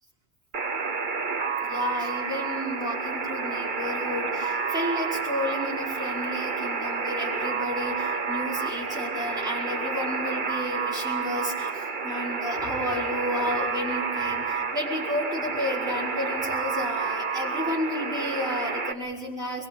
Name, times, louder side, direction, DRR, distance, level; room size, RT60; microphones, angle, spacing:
Alarm, 0.5-18.9, right 5 dB, 50° right, 1.4 m, -30 dB
voice 1, 1.6-19.7, left 1 dB, 5° right, -5 dB, 5.7 m, -32 dB
23.0 x 23.0 x 8.8 m, 1.3 s
omnidirectional pair, 1.1 m